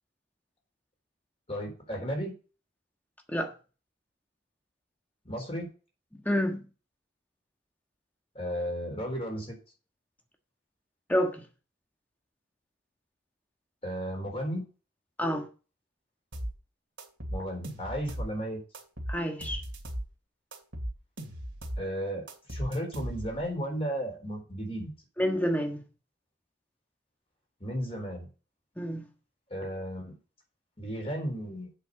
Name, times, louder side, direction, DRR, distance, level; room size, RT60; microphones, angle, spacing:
voice 1, 1.5-2.3 5.2-5.7 8.3-9.6 13.8-14.7 17.3-18.6 21.8-24.9 27.6-28.3 29.5-30.2 30.8-31.7, equal, 30° left, 4.1 m, -34 dB
voice 2, 6.2-6.6 11.1-11.4 15.2-15.5 19.1-19.6 25.2-25.8 28.8-29.1, equal, 10° left, 1.5 m, -28 dB
sound 1, 16.3-16.6 17.0-18.3 18.7-20.1 20.5-21.9 22.3-23.5, equal, 70° right, 2.5 m, -37 dB
8.2 x 6.2 x 6.6 m
head